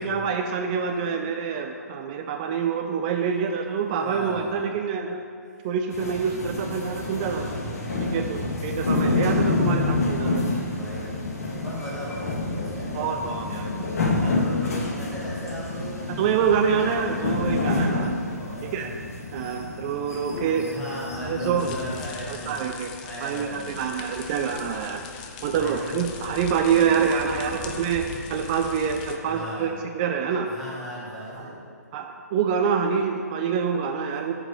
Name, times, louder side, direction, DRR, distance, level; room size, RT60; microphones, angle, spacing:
voice 1, 0.0-5.2 5.6-7.5 8.1-10.4 12.9-13.9 16.2-18.2 18.7-18.9 19.3-20.7 21.2-21.7 22.3-22.9 23.2-25.0 25.4-28.0 28.3-30.5 31.9-34.3, right 6 dB, 25° right, 4 dB, 0.4 m, -26 dB
voice 2, 0.8-1.2 3.2-3.4 3.8-4.7 5.5-5.7 6.5-8.6 10.4-13.2 14.1-16.6 18.4-18.9 20.6-22.7 23.0-23.9 24.4-25.2 25.5-26.0 26.7-27.7 29.2-29.9 30.4-31.6, equal, 5° left, -8 dB, 1.3 m, -38 dB
sound 1, 5.9-22.0, left 2 dB, 55° left, 1.5 m, -28 dB
sound 2, 21.6-29.2, left 6 dB, 30° left, 0.5 m, -40 dB
5.9 x 5.0 x 6.6 m, 2.3 s
figure-of-eight pair, 135°, 9 cm